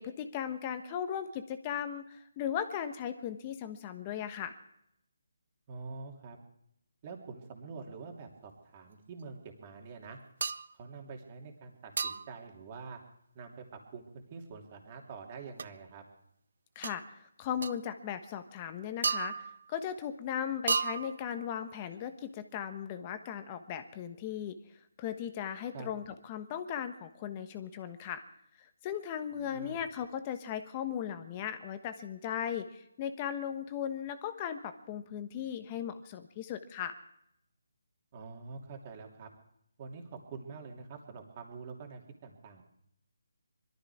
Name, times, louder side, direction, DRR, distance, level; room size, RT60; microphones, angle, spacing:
voice 1, 0.0-4.6 16.7-17.0 17.4-24.6 25.0-28.2 28.6-37.0, left 9 dB, 25° left, 9 dB, 1.1 m, -37 dB
voice 2, 5.7-6.4 7.0-10.2 10.7-13.0 13.3-16.0 25.7-25.9 29.3-29.8 38.1-39.3 39.8-42.6, right 4 dB, 30° right, 2 dB, 3.0 m, -46 dB
sound 1, 10.4-10.7 12.0-12.4 15.6-15.7 16.8-17.0 17.6-17.8 19.0-19.7 20.7-21.3, right 5 dB, 60° right, 0.6 m, -33 dB
21.5 x 13.5 x 4.9 m, 0.76 s
figure-of-eight pair, 155°, 0 cm